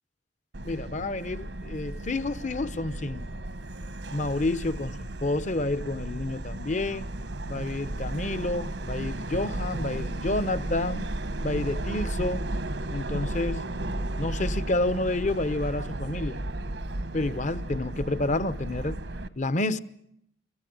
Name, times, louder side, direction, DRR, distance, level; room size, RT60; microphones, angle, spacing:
Subway metro underground, 0.5-19.3, right 1 dB, 80° right, 1.3 m, -34 dB
voice 1, 0.6-3.3 4.1-4.9 5.2-7.1 7.5-11.0 11.4-12.4 12.9-13.7 14.2-16.4 17.1-19.0 19.4-19.8, left 2 dB, 45° left, 0.8 m, -29 dB
27.5 x 14.5 x 7.8 m
head